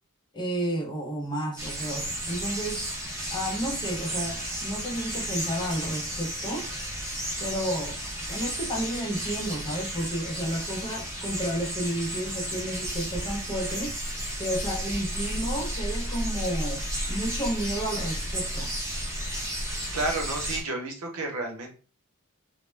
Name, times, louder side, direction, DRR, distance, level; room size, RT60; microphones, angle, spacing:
voice 1, 0.3-2.8 3.3-6.7 7.4-8.0 8.3-13.9 14.4-18.7, right 1 dB, 20° left, 0.5 m, -31 dB
sound 1, 1.6-20.6, equal, 15° right, 0.7 m, -33 dB
voice 2, 19.9-21.7, right 2 dB, 90° right, 0.7 m, -31 dB
2.1 x 2.1 x 3.1 m
head